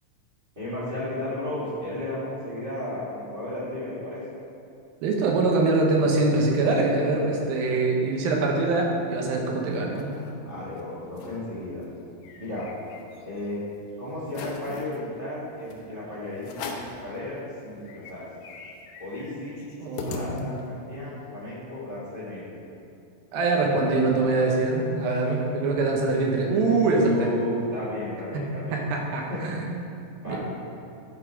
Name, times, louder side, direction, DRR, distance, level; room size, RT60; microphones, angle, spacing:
voice 1, 0.6-4.2 10.4-11.8 12.4-12.7 13.2-13.6 14.0-18.3 19.0-19.6 20.0-22.4 27.0-28.8 29.3-29.4 30.2-30.4, left 1 dB, 20° right, -9 dB, 1.8 m, -34 dB
voice 2, 5.0-10.1 19.8-20.5 23.3-27.3 28.3-29.7 30.3-30.4, right 3 dB, 90° right, 0 dB, 3.0 m, -24 dB
sound 1, 9.7-10.3 10.8-10.9 11.1-11.4 11.8-13.4 13.8-13.9 14.3-15.0 15.7-15.8 16.4-17.0 17.5-17.6 17.8-20.8, left 5 dB, 75° left, 2.0 m, -40 dB
11.5 x 5.7 x 4.8 m, 2.7 s
omnidirectional pair, 4.1 m